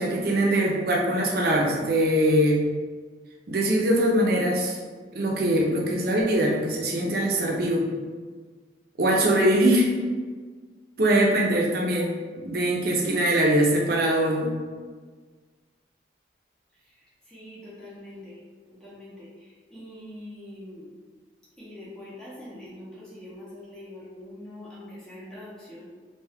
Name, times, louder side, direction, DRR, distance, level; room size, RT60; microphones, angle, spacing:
voice 1, 0.0-2.6 3.5-4.8 5.1-7.9 9.0-9.9 11.0-12.1 12.4-14.5, right 1 dB, 55° right, -1 dB, 0.5 m, -22 dB
voice 2, 17.3-18.4 18.7-20.9 21.6-25.9, left 1 dB, 5° left, -10 dB, 0.6 m, -43 dB
2.6 x 2.2 x 3.4 m, 1.5 s
head